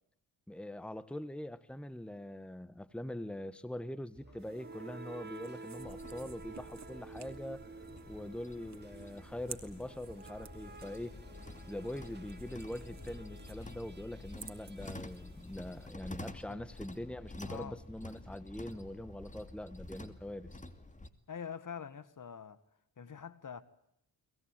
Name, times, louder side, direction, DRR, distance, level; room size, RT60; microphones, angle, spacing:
voice 1, 0.5-7.6 8.1-11.1 11.7-20.5, left 1 dB, 5° left, 1.4 m, -43 dB
sound 1, 4.1-16.0, right 4 dB, 25° right, 2.8 m, -52 dB
sound 2, 4.4-15.9, right 6 dB, 45° right, 2.8 m, -56 dB
sound 3, 5.8-21.1, left 2 dB, 20° left, 2.5 m, -49 dB
voice 2, 17.5-17.8 21.3-22.6 23.0-23.6, left 7 dB, 50° left, 1.8 m, -44 dB
22.5 x 20.0 x 9.1 m
cardioid pair, 60°, 40 cm